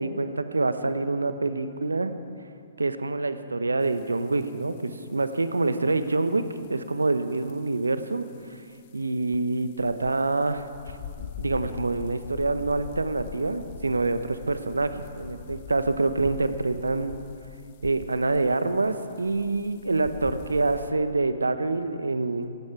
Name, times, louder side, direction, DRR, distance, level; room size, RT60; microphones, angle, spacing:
voice 1, 0.0-2.1 2.8-17.2 17.8-22.6, right 3 dB, 75° right, 10 dB, 1.0 m, -26 dB
sound 1, 3.8-20.9, left 7 dB, 40° left, 1.0 m, -44 dB
17.5 x 16.0 x 4.8 m, 2.4 s
figure-of-eight pair, 120°, 0 cm